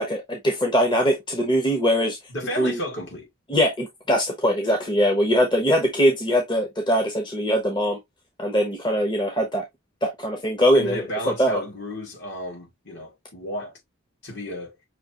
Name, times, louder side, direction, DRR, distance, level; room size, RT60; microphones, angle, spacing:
voice 1, 0.0-2.2 2.6-2.8 3.5-8.0 8.4-9.6 10.0-11.0 11.4-11.6, equal, 20° left, 1.0 m, -22 dB
voice 2, 2.3-3.3 10.7-13.7 14.2-14.8, equal, 55° left, 2.3 m, -32 dB
6.1 x 3.0 x 2.9 m
head